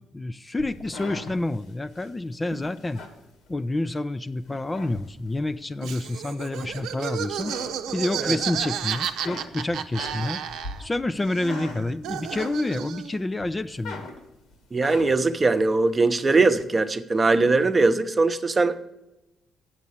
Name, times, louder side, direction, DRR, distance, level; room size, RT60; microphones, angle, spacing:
voice 1, 0.0-3.0 3.5-7.5 7.9-10.4 10.8-14.1, left 2 dB, 20° left, 0.4 m, -28 dB
sound 1, 0.6-4.0 4.4-5.5 6.0-7.0 7.3-8.6 8.9-13.0 13.4-15.4, left 3 dB, 85° left, 2.1 m, -41 dB
Laughter, 5.8-11.0 11.2-13.2, right 9 dB, 85° right, 0.7 m, -32 dB
voice 2, 14.7-18.9, right 3 dB, 30° right, 0.8 m, -21 dB
8.3 x 7.4 x 8.1 m
cardioid pair, 90°, 0 cm